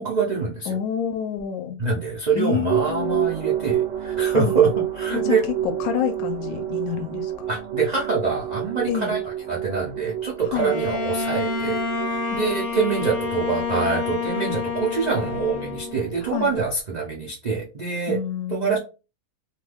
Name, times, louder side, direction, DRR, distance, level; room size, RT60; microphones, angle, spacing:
voice 1, 0.0-0.7 1.8-5.4 7.5-9.2 9.5-11.8 12.1-18.2 18.5-18.8, right 5 dB, 80° right, 0.3 m, -25 dB
voice 2, 0.7-1.8 2.3-3.3 4.3-4.6 5.1-5.4 5.6-7.5 8.9-9.1 10.5-10.7 16.2-16.5 18.1-18.8, left 9 dB, 75° left, 1.0 m, -28 dB
sound 1, 2.7-16.5, right 11 dB, 65° right, 0.8 m, -30 dB
Bowed string instrument, 10.5-16.3, left 5 dB, 55° left, 0.5 m, -28 dB
2.7 x 2.2 x 3.3 m
omnidirectional pair, 1.6 m